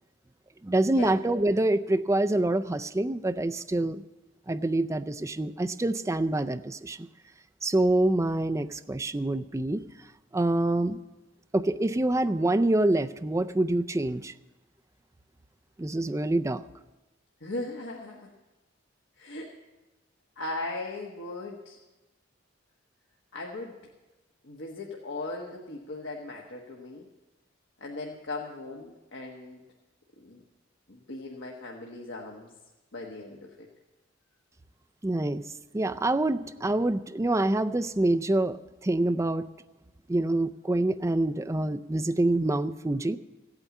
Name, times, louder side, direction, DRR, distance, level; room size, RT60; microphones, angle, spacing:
voice 1, 0.6-4.0 4.5-7.1 7.6-9.8 10.3-11.0 11.5-14.3 15.8-16.6 35.0-35.4 35.7-39.5 40.1-43.2, right 2 dB, 15° right, 9 dB, 0.4 m, -26 dB
voice 2, 17.4-18.3 19.2-19.6 20.4-21.8 23.3-23.8 24.4-27.1 27.8-29.6 30.2-30.4 30.9-32.5 32.9-33.7, left 2 dB, 65° left, -1 dB, 1.4 m, -38 dB
15.5 x 8.9 x 8.3 m, 1.1 s
head